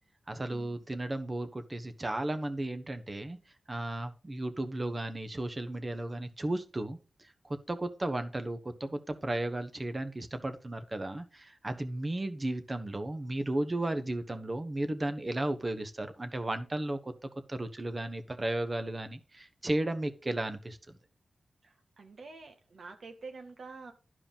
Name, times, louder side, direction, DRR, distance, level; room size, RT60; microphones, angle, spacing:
voice 1, 0.3-3.4 3.7-7.0 7.7-20.8, right 1 dB, 30° right, 1.1 m, -34 dB
voice 2, 21.6-23.9, right 4 dB, 65° right, 1.8 m, -47 dB
12.0 x 4.9 x 5.5 m
wide cardioid pair, 85°, 0 cm